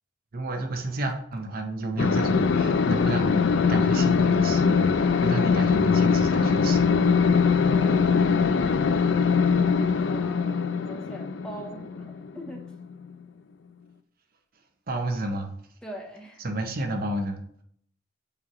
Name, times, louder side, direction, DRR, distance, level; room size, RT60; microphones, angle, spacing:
voice 1, 0.3-7.3 14.9-15.5 16.4-17.4, right 1 dB, 50° right, 4 dB, 0.8 m, -31 dB
sound 1, 2.0-13.1, left 5 dB, 70° left, 0.4 m, -22 dB
voice 2, 7.7-9.1 10.0-12.7 15.8-16.5, right 1 dB, 5° left, 0 dB, 0.9 m, -42 dB
6.9 x 4.7 x 3.0 m, 0.66 s
head